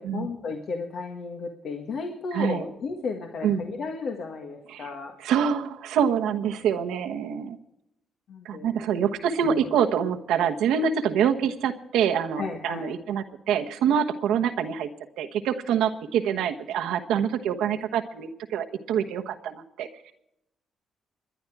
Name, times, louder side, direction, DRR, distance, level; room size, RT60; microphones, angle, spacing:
voice 1, 0.0-5.1 8.3-8.8 9.4-9.6 12.4-12.9, left 4 dB, 65° left, 3 dB, 1.6 m, -34 dB
voice 2, 2.3-2.6 3.4-3.7 4.7-4.9 5.2-7.6 8.4-14.9 15.2-19.9, right 8 dB, 85° right, 5 dB, 1.1 m, -26 dB
22.5 x 10.5 x 4.8 m, 0.83 s
supercardioid pair, 70°, 0 cm